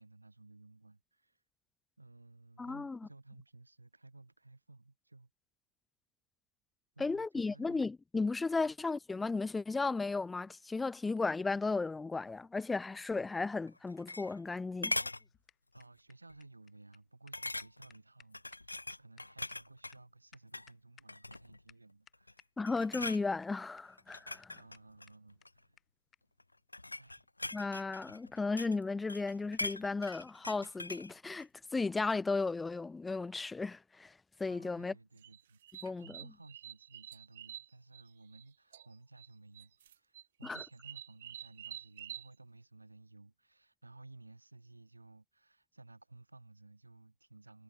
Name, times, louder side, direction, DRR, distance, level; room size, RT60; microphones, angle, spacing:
voice 1, 0.0-1.4 2.0-5.3 6.9-7.9 8.6-8.7 15.7-22.5 24.3-25.8 26.9-27.3 34.5-47.6, right 2 dB, 85° right, 6.5 m, -57 dB
voice 2, 2.6-3.0 7.0-15.0 22.6-24.6 27.5-34.9 35.8-36.2 40.4-40.6, left 3 dB, 10° left, 1.0 m, -35 dB
sound 1, 13.7-14.5 14.8-15.2 15.8-16.0 16.3-16.4 17.3-18.0 18.3-20.0 20.4-20.7 21.1-21.6 22.1-22.4 22.7-23.2 24.0-25.6 26.4-28.8 29.1-31.1 31.4-31.5, left 2 dB, 85° left, 0.3 m, -41 dB
sound 2, 14.7-21.4 21.7-21.8 22.1-22.5 22.8-23.5 23.8-23.9 24.1-24.2 24.4-24.5 24.7-24.8 25.1-25.2 25.4-25.5 25.8-25.9 26.1-26.2 27.1-27.2, left 10 dB, 25° left, 6.6 m, -63 dB
sound 3, 35.2-38.4 38.7-39.3 39.5-42.3, right 11 dB, 60° right, 1.7 m, -48 dB
figure-of-eight pair, 90°, 0 cm